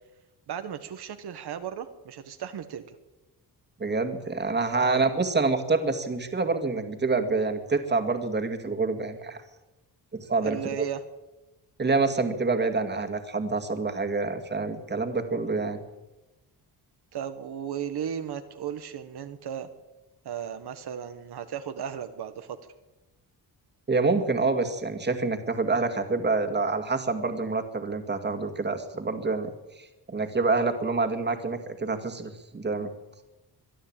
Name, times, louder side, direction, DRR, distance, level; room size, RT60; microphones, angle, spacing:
voice 1, 0.5-2.9 4.8-5.0 10.4-11.0 17.1-19.7 20.2-22.6, right 8 dB, 70° right, 8 dB, 1.5 m, -35 dB
voice 2, 3.8-9.4 10.1-10.8 11.8-15.8 23.9-29.5 29.8-32.9, right 3 dB, 25° right, 6 dB, 2.2 m, -27 dB
23.5 x 13.0 x 8.9 m, 1.0 s
wide cardioid pair, 150°, 41 cm